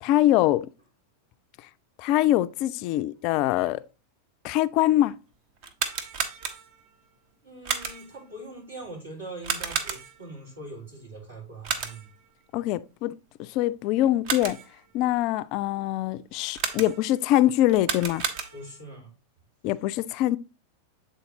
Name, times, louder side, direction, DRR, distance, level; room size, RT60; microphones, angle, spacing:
voice 1, 0.0-0.7 2.0-3.8 4.4-5.1 12.5-13.1 13.5-14.6 14.9-18.2 19.6-20.4, left 14 dB, 40° left, 0.3 m, -23 dB
sound 1, 5.6-6.9 7.6-8.2 9.4-10.3 11.6-12.2 14.0-14.8 16.5-17.2 17.7-18.8, right 5 dB, 45° right, 0.9 m, -32 dB
voice 2, 7.4-12.1 18.5-19.1, right 2 dB, 70° right, 3.4 m, -42 dB
8.1 x 3.9 x 3.8 m
figure-of-eight pair, 90°, 0 cm